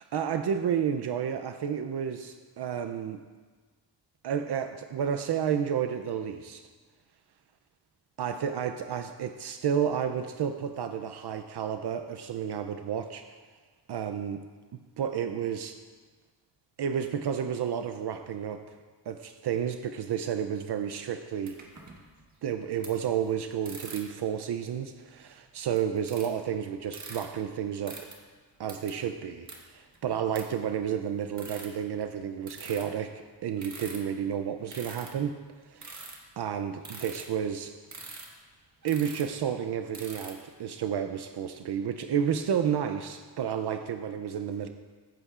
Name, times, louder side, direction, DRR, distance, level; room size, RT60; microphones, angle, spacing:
voice 1, 0.0-3.2 4.2-6.6 8.2-13.4 13.9-14.5 15.0-15.8 16.8-18.6 19.1-21.6 22.4-28.0 28.6-35.4 35.7-36.0 36.4-37.7 38.8-44.7, right 8 dB, 70° right, 8 dB, 0.6 m, -31 dB
sound 1, 21.4-22.2 22.8-22.9 23.6-24.2 25.0-25.1 25.6-26.5 26.8-27.2 27.9-28.1 28.7-29.0 29.5-29.6 29.9-30.0 30.3-30.4 30.8-30.9 31.4-31.8 32.5-32.9 33.6-34.1 34.7-35.3 35.8-36.4 36.8-37.2 37.8-38.4 38.8-39.4 39.9-40.5, right 3 dB, 40° right, 1.4 m, -44 dB
15.0 x 8.4 x 2.4 m, 1.4 s
wide cardioid pair, 110°, 42 cm